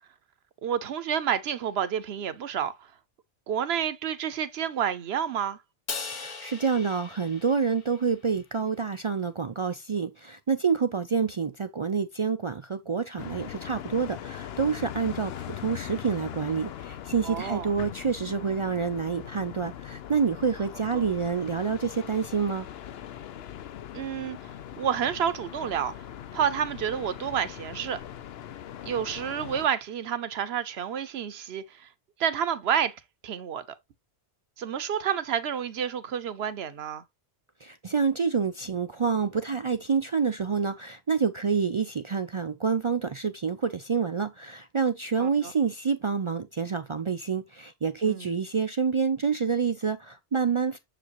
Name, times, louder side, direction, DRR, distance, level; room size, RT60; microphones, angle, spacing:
voice 1, 0.6-2.9 3.5-5.6 17.2-17.7 20.9-21.1 23.9-24.4 24.8-25.9 26.3-28.0 28.8-31.9 32.2-33.6 34.6-37.0 45.2-45.5 48.0-48.3, right 8 dB, 75° right, 1.0 m, -29 dB
Crash cymbal, 5.9-8.3, left 4 dB, 45° left, 1.1 m, -39 dB
voice 2, 6.1-22.7 37.6-50.8, right 5 dB, 50° right, 0.3 m, -28 dB
sound 1, 13.2-29.7, left 11 dB, 70° left, 0.8 m, -41 dB
6.8 x 5.0 x 3.0 m
omnidirectional pair, 1.1 m